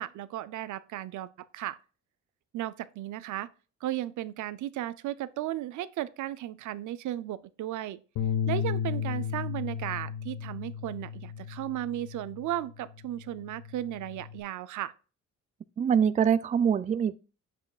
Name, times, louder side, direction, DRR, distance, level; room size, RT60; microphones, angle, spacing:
voice 1, 0.0-1.8 2.5-3.5 3.8-8.0 8.5-14.9, right 13 dB, 75° right, 0.6 m, -35 dB
Bass guitar, 8.2-12.6 13.0-14.4, left 8 dB, 75° left, 0.8 m, -34 dB
voice 2, 15.8-17.2, right 7 dB, 25° right, 0.4 m, -24 dB
7.6 x 7.2 x 2.4 m
cardioid pair, 90°, 30 cm